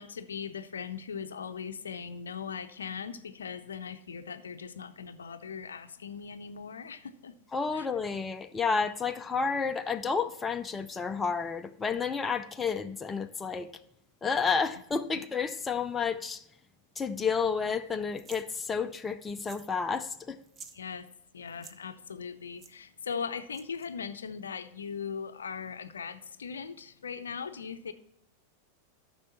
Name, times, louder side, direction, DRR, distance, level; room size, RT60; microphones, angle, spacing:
voice 1, 0.0-7.3 7.7-7.9 15.1-15.2 20.7-21.1 21.3-27.9, left 6 dB, 70° left, 0.6 m, -39 dB
voice 2, 7.5-13.7 14.2-16.4 17.0-20.4, left 5 dB, 15° left, 0.5 m, -31 dB
sound 1, 18.2-18.5 19.3-19.7 20.0-20.1 20.4-20.8 21.5-21.8 22.6-22.7 23.5-23.9, right 5 dB, 25° right, 0.8 m, -50 dB
13.5 x 6.2 x 4.1 m
figure-of-eight pair, 90°, 0 cm